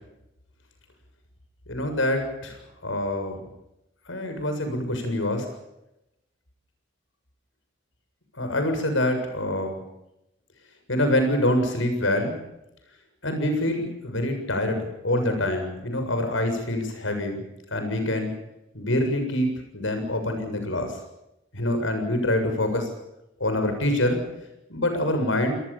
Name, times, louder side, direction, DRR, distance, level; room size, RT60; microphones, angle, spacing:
voice 1, 1.7-3.4 4.1-5.5 8.4-9.8 10.9-12.4 13.2-17.4 17.7-18.3 18.7-19.5 19.7-21.0 21.5-22.9 23.4-24.2 24.7-25.6, left 1 dB, 80° left, 6 dB, 7.3 m, -25 dB
27.5 x 19.5 x 7.4 m, 0.89 s
head